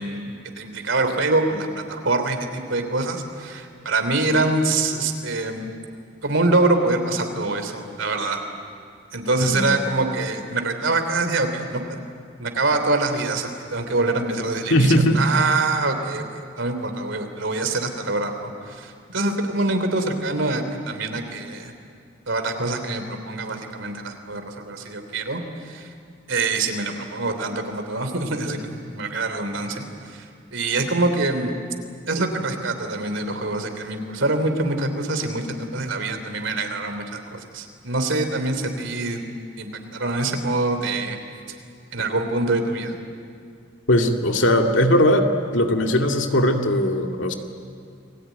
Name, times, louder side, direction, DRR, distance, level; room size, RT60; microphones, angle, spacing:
voice 1, 0.0-5.7 6.2-8.4 9.1-12.0 12.4-21.7 22.3-25.9 26.3-31.5 32.1-39.2 39.6-41.2 41.9-43.0, right 2 dB, 70° right, 7 dB, 3.3 m, -25 dB
voice 2, 14.7-15.2 43.9-45.3 45.5-47.3, left 1 dB, 70° left, 3 dB, 2.3 m, -19 dB
29.5 x 21.5 x 9.4 m, 2.4 s
head